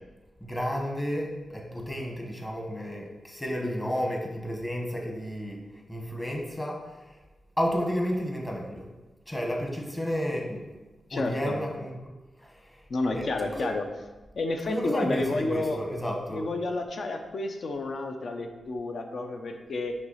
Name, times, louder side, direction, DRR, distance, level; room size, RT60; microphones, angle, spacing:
voice 1, 0.4-5.6 5.9-7.1 7.6-8.9 9.3-10.7 11.1-12.0 12.4-12.8 13.1-13.7 14.7-16.5, equal, 15° left, 0 dB, 1.1 m, -31 dB
voice 2, 11.1-11.6 12.9-13.8 14.3-15.8 16.3-19.9, left 2 dB, 60° left, 5 dB, 0.7 m, -30 dB
5.9 x 3.2 x 5.5 m, 1.2 s
wide cardioid pair, 105°, 0 cm